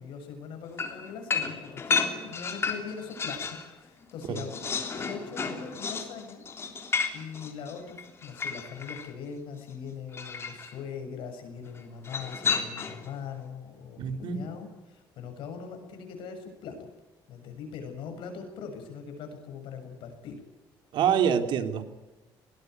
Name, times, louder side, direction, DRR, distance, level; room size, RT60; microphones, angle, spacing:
voice 1, 0.0-4.6 4.9-6.8 7.1-16.9 17.3-20.4, left 6 dB, 75° left, 6 dB, 7.2 m, -41 dB
sound 1, 0.8-3.7 4.0-9.1 10.1-10.7 12.0-13.1, left 5 dB, 30° left, 3.5 m, -32 dB
voice 2, 13.9-14.4 20.9-21.8, right 8 dB, 70° right, 6 dB, 3.1 m, -26 dB
20.5 x 19.5 x 9.5 m, 1.1 s
cardioid pair, 155°, 9 cm